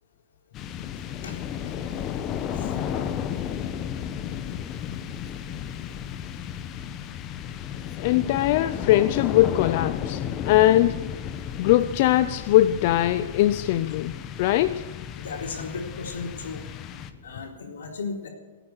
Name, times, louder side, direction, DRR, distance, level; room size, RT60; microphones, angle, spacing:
sound 1, 0.5-17.5, left 9 dB, 25° left, 1.0 m, -33 dB
voice 1, 8.0-11.1 11.6-14.9, left 14 dB, 45° left, 11 dB, 0.5 m, -21 dB
voice 2, 15.2-16.6 17.2-18.3, left 4 dB, 85° left, 1 dB, 3.8 m, -35 dB
16.0 x 9.1 x 9.4 m, 1.3 s
hypercardioid pair, 150°, 0 cm